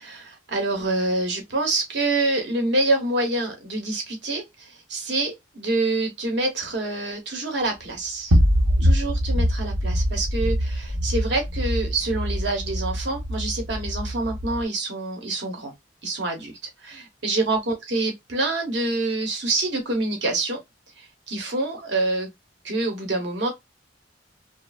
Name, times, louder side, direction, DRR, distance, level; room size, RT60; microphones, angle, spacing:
voice 1, 0.0-8.4 8.8-15.7 16.0-20.6 21.0-22.3 22.6-23.5, right 2 dB, 65° right, 1.0 m, -26 dB
sound 1, 8.3-14.6, equal, 85° right, 0.9 m, -23 dB
3.1 x 2.1 x 2.2 m
head